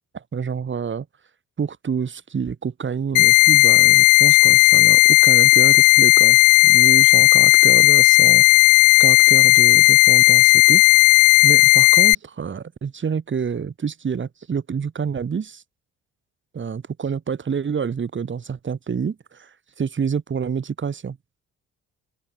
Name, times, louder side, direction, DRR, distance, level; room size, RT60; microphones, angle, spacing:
voice 1, 0.1-1.1 1.6-8.4 9.0-10.8 11.4-15.6 16.5-19.5 19.8-21.2, right 6 dB, 40° right, 2.5 m, -27 dB
sound 1, 3.1-12.1, left 20 dB, 90° left, 0.5 m, -13 dB
open air
cardioid pair, 90°, 30 cm